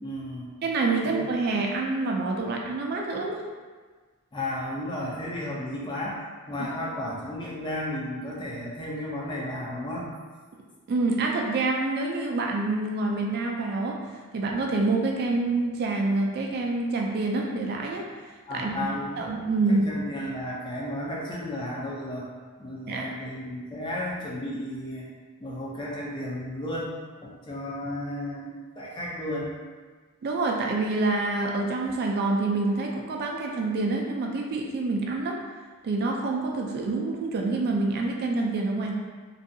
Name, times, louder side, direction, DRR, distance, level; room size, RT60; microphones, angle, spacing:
voice 1, 0.0-0.5 1.0-1.2 4.3-6.2 6.5-10.1 18.5-19.3 19.7-22.3 22.6-25.1 25.4-26.9 27.2-29.5, left 1 dB, 20° left, -4 dB, 0.4 m, -33 dB
voice 2, 0.6-3.4 10.9-14.0 14.3-18.1 18.5-18.9 19.2-19.9 22.9-23.1 30.2-35.4 35.8-38.9, right 3 dB, 50° right, 0 dB, 0.3 m, -27 dB
2.6 x 2.3 x 2.5 m, 1.4 s
head